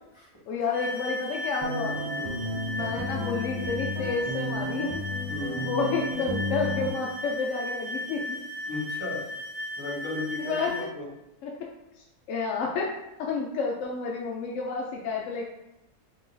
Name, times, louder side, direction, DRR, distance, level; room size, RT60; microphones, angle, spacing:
voice 1, 0.5-2.0 2.7-5.0 5.6-8.4 10.4-10.9 11.4-11.5 12.3-12.9 13.2-15.4, left 4 dB, 70° left, -1 dB, 0.8 m, -30 dB
sound 1, 0.7-10.9, left 1 dB, 10° right, 1.4 m, -36 dB
sound 2, 1.6-6.9, left 1 dB, 50° right, 0.4 m, -32 dB
voice 2, 2.1-2.5 5.3-5.7 8.7-9.2 9.8-11.1, left 2 dB, 20° left, -7 dB, 1.3 m, -35 dB
3.8 x 3.7 x 2.6 m, 0.92 s
omnidirectional pair, 1.6 m